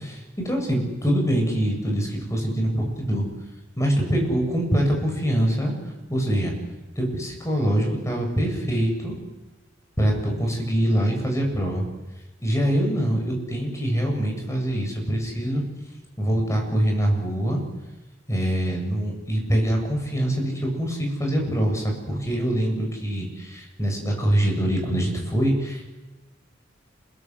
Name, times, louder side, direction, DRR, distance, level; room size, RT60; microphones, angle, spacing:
voice 1, 0.4-3.2 3.8-5.7 6.1-6.5 7.0-9.2 10.0-11.8 12.4-15.6 16.2-17.6 18.3-25.9, right 1 dB, 15° left, 1 dB, 7.8 m, -24 dB
28.0 x 22.0 x 8.2 m, 1.1 s
head